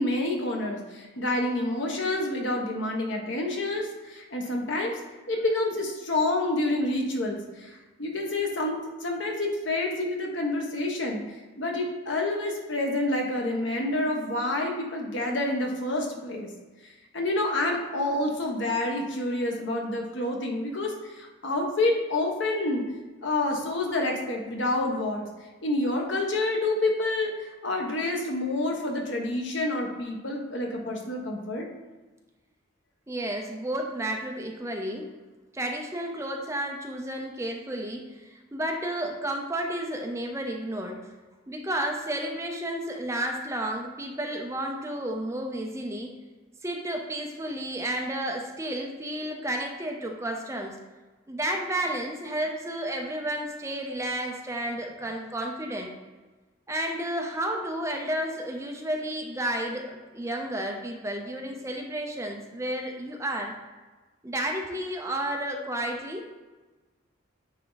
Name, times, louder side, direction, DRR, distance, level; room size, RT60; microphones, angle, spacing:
voice 1, 0.0-4.9 5.3-11.2 11.6-16.5 17.1-22.8 23.2-25.3 25.6-31.6, left 2 dB, 65° left, 1 dB, 1.2 m, -28 dB
voice 2, 33.1-35.1 35.5-41.1 41.5-46.1 46.6-50.8 51.3-55.9 56.7-63.5 64.2-66.3, right 1 dB, 15° right, 2 dB, 0.6 m, -32 dB
9.2 x 3.6 x 4.0 m, 1.2 s
head